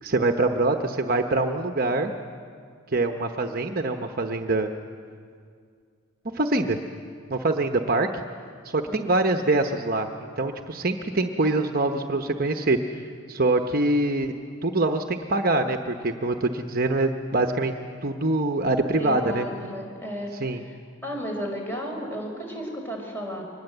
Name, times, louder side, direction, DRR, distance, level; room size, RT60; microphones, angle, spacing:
voice 1, 0.0-2.1 2.9-4.7 6.3-6.8 7.3-8.1 8.6-13.0 13.3-14.3 14.6-17.7 18.0-19.4 20.4-20.6, right 2 dB, 45° right, 5 dB, 0.9 m, -24 dB
voice 2, 18.9-20.3 20.6-20.8 21.0-23.4, equal, 10° left, 0 dB, 4.7 m, -33 dB
24.0 x 20.5 x 8.0 m, 2.2 s
head